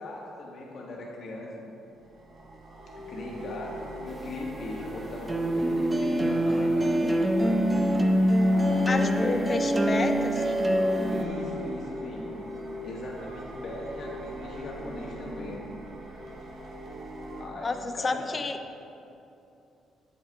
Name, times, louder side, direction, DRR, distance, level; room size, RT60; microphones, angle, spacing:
voice 1, 0.0-1.7 3.0-7.0 8.4-9.5 11.1-12.4 12.8-15.6 16.1-16.2 17.4-18.4, left 2 dB, 65° left, -3 dB, 1.7 m, -39 dB
sound 1, 2.0-17.4, right 1 dB, 70° right, 1.4 m, -40 dB
sound 2, 4.1-11.2, equal, 20° right, 0.7 m, -24 dB
voice 2, 8.9-10.7 17.6-18.6, left 3 dB, 35° left, 7 dB, 0.6 m, -30 dB
8.2 x 7.9 x 3.4 m, 2.7 s
cardioid pair, 90°, 0 cm